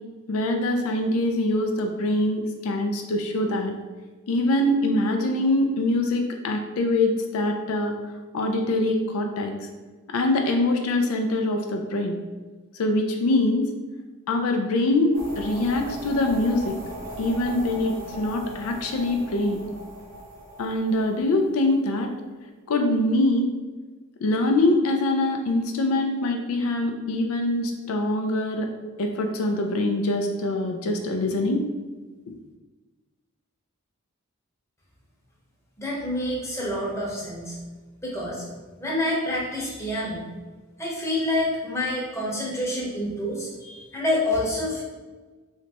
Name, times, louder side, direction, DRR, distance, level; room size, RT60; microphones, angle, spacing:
voice 1, 0.3-3.7 4.3-7.9 8.3-9.5 10.1-12.2 12.8-13.7 14.3-16.7 17.2-19.6 20.6-22.1 22.7-23.5 24.2-28.7 29.0-31.6, left 2 dB, 85° left, 3 dB, 0.4 m, -24 dB
sound 1, 15.1-22.0, equal, 85° right, 0.9 m, -38 dB
voice 2, 35.8-37.6 38.0-38.4 38.8-40.3 40.8-44.8, left 1 dB, 15° left, -5 dB, 0.8 m, -27 dB
3.2 x 2.9 x 2.9 m, 1.3 s
head